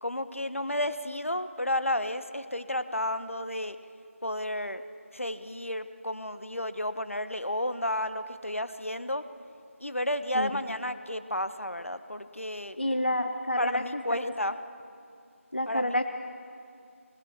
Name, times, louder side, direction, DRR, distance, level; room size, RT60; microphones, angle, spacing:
voice 1, 0.0-3.8 4.2-4.8 5.1-9.2 9.8-12.8 13.6-14.6 15.7-16.0, left 1 dB, 65° left, 11 dB, 1.1 m, -32 dB
voice 2, 12.8-14.3 15.5-16.0, left 1 dB, 45° left, 7 dB, 0.9 m, -29 dB
21.5 x 20.0 x 7.1 m, 2.4 s
figure-of-eight pair, 175°, 8 cm